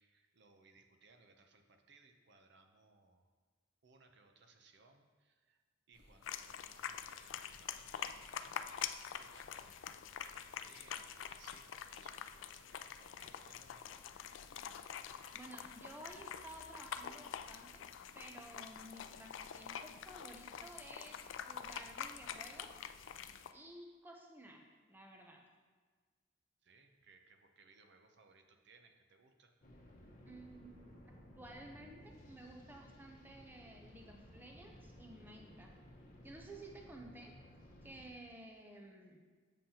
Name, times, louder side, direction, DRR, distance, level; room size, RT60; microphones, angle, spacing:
voice 1, 0.0-3.3 3.8-5.6 5.9-9.9 10.2-14.1 16.6-17.0 26.6-29.5, right 4 dB, 60° right, 5 dB, 0.6 m, -66 dB
sound 1, 5.9-23.3, equal, 30° left, 1.0 m, -67 dB
sound 2, 6.2-23.5, left 8 dB, 75° left, 0.3 m, -46 dB
voice 2, 15.3-17.8 18.1-23.2 23.5-24.6 24.9-25.4 30.3-35.7 36.2-37.4 37.8-39.2, right 1 dB, 10° right, 1 dB, 0.7 m, -54 dB
sound 3, 29.6-38.1, left 1 dB, 50° left, 1.1 m, -58 dB
7.5 x 7.2 x 2.8 m, 1.5 s
head